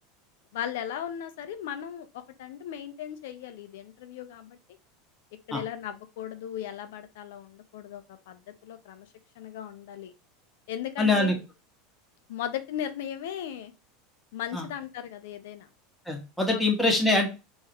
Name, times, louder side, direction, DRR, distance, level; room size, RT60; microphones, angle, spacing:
voice 1, 0.5-4.6 5.5-9.1 9.4-10.1 10.7-11.4 12.3-13.7 14.3-15.7 16.5-16.6, left 10 dB, 75° left, 9 dB, 0.5 m, -37 dB
voice 2, 11.0-11.3 14.5-14.6 16.1-17.3, left 2 dB, 5° left, 1 dB, 1.4 m, -24 dB
3.8 x 2.6 x 3.0 m, 0.29 s
hypercardioid pair, 105°, 0 cm